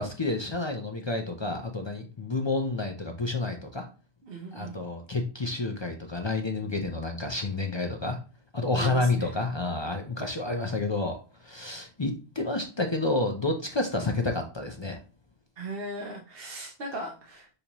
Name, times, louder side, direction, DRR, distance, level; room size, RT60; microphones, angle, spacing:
voice 1, 0.0-3.9 4.5-8.2 8.5-15.0, left 2 dB, 35° left, 3 dB, 0.4 m, -30 dB
voice 2, 4.2-4.8 8.7-9.3 15.6-17.5, right 1 dB, 60° right, 0 dB, 1.0 m, -38 dB
6.6 x 2.7 x 2.9 m, 0.35 s
omnidirectional pair, 1.1 m